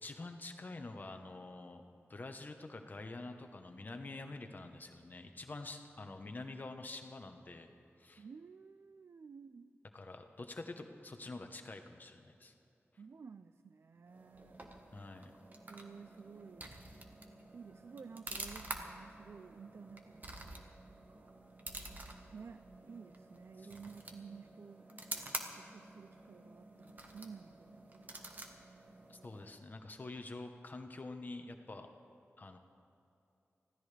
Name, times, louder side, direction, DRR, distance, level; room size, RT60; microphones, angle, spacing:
voice 1, 0.0-1.8 2.1-7.7 8.0-8.2 9.9-12.5 14.9-15.3 23.6-23.7 29.1-31.9 32.4-32.6, left 2 dB, 40° left, 5 dB, 1.0 m, -47 dB
voice 2, 8.2-9.8 13.0-14.7 15.7-16.7 17.5-20.7 21.1-21.4 22.3-24.9 25.6-27.9, right 5 dB, 60° right, 11 dB, 0.4 m, -53 dB
sound 1, 14.1-29.6, right 2 dB, 40° right, 1.5 m, -49 dB
25.0 x 16.5 x 3.4 m, 2.7 s
wide cardioid pair, 115°, 5 cm